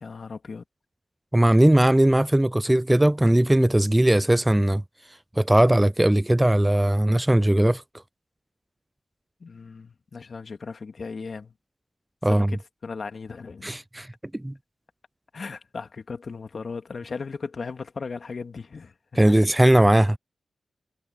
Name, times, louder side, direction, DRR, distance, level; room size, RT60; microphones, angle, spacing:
voice 1, 0.0-0.6 9.4-11.5 12.2-12.6 12.8-13.7 15.3-18.9, left 4 dB, 60° left, 2.3 m, -36 dB
voice 2, 1.3-4.8 5.4-7.8 12.2-12.6 13.6-14.1 14.3-14.5 19.2-20.2, right 1 dB, 15° right, 0.4 m, -19 dB
supercardioid pair, 40°, 0 cm